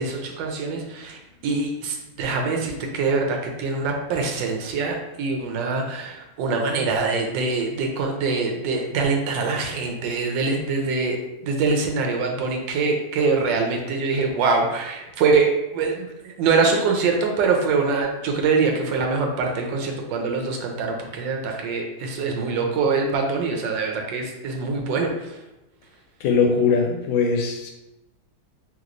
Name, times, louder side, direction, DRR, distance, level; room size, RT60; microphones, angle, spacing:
voice 1, 0.0-11.2 11.4-25.1, right 4 dB, 75° right, 2 dB, 1.2 m, -24 dB
voice 2, 26.2-27.7, left 5 dB, 80° left, 2 dB, 1.3 m, -20 dB
3.3 x 3.0 x 2.5 m, 0.94 s
omnidirectional pair, 2.1 m